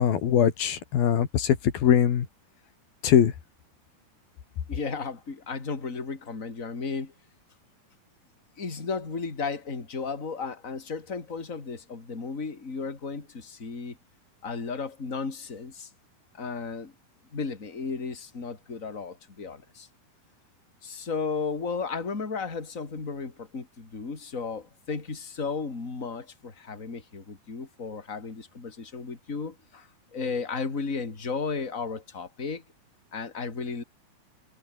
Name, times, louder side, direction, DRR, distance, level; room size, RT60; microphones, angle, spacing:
voice 1, 0.0-2.3 3.0-3.3, left 9 dB, 85° left, 4.3 m, -22 dB
voice 2, 4.7-7.1 8.6-14.0 14.4-15.9 16.4-16.9 17.3-19.9 20.8-32.6 33.1-33.8, left 4 dB, 20° left, 3.7 m, -34 dB
omnidirectional pair, 4.1 m